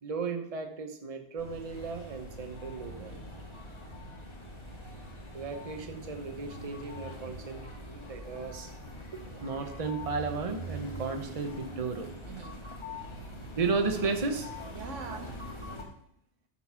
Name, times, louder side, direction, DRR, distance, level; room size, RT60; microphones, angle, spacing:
voice 1, 0.0-3.1 5.3-7.7 7.9-8.7 9.1-12.1 13.6-14.5, right 4 dB, 30° right, 1.1 m, -34 dB
sound 1, 1.4-15.8, equal, 25° left, 1.8 m, -43 dB
voice 2, 2.9-3.7 8.1-8.7 9.4-9.5 12.3-13.0 14.7-15.7, right 4 dB, 80° right, 1.7 m, -46 dB
13.0 x 4.5 x 5.8 m
omnidirectional pair, 1.3 m